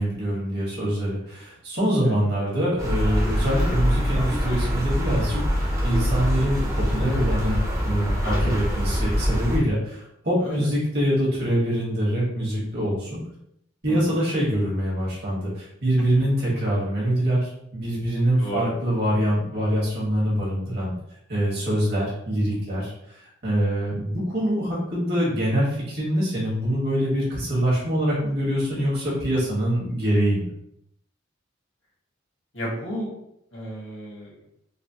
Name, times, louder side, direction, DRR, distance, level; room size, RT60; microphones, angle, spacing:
voice 1, 0.0-13.2 13.8-20.9 21.3-22.9 23.4-30.5, equal, 55° right, -6 dB, 1.4 m, -24 dB
voice 2, 2.0-2.4 8.2-8.6 10.4-10.7 13.9-14.0 18.4-18.6 32.5-33.1 33.5-34.3, equal, 80° left, -5 dB, 1.5 m, -32 dB
sound 1, 2.8-9.6, equal, 15° right, 0.6 m, -24 dB
3.9 x 2.1 x 2.8 m, 0.77 s
head